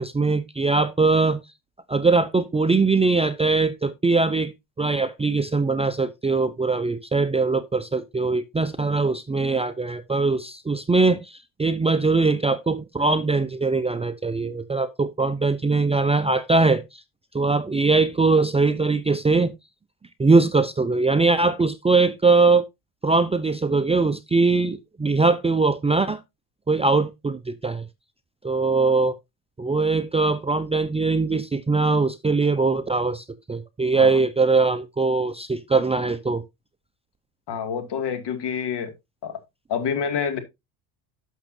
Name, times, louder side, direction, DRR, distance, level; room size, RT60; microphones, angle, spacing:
voice 1, 0.0-1.4 1.9-4.5 4.8-17.0 17.3-19.5 20.2-22.6 23.0-26.2 26.7-27.9 28.4-29.2 29.6-36.4, right 3 dB, 10° right, 0.6 m, -21 dB
voice 2, 37.5-38.9 39.2-39.4 39.7-40.4, left 7 dB, 55° left, 2.3 m, -27 dB
12.0 x 6.5 x 2.7 m
hypercardioid pair, 70°, 50 cm